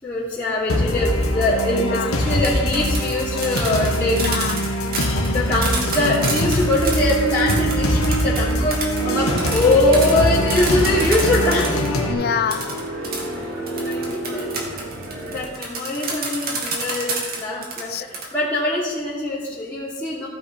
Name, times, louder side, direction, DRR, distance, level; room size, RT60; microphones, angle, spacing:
voice 1, 0.0-4.2 5.3-11.9 13.3-13.4 13.8-14.5 15.2-20.3, left 1 dB, 15° left, 2.8 m, -22 dB
sound 1, 0.7-12.1, equal, 80° left, 1.5 m, -22 dB
voice 2, 1.8-2.1 4.2-4.7 12.1-12.8 17.6-18.1, left 7 dB, 45° left, 0.4 m, -27 dB
sound 2, 2.3-11.9 12.5-18.2, right 3 dB, 45° right, 1.9 m, -29 dB
sound 3, 9.0-15.4, right 1 dB, 60° right, 2.1 m, -30 dB
15.5 x 5.4 x 5.1 m
head